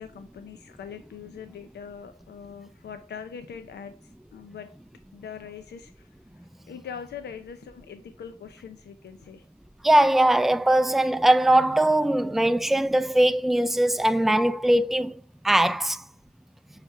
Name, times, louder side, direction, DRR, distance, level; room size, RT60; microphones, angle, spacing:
voice 1, 0.0-4.7 5.1-9.4, left 7 dB, 85° left, 0.6 m, -42 dB
voice 2, 9.8-15.2 15.4-16.0, right 1 dB, ahead, 0.4 m, -21 dB
6.3 x 5.0 x 4.6 m
cardioid pair, 70°, 17 cm